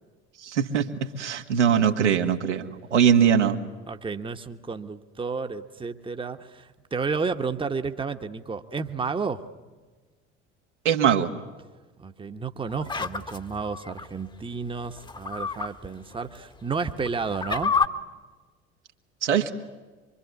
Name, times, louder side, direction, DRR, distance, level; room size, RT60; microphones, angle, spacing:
voice 1, 0.4-3.6 10.9-11.3 19.2-19.5, right 8 dB, 75° right, 4 dB, 1.9 m, -22 dB
voice 2, 3.9-9.4 12.0-17.7, right 4 dB, 15° right, 8 dB, 1.2 m, -31 dB
sound 1, 12.7-14.1 15.0-15.7 16.1-16.2 16.9-17.9, left 5 dB, 15° left, 1.2 m, -28 dB
25.0 x 24.0 x 9.6 m, 1.3 s
figure-of-eight pair, 65°, 35 cm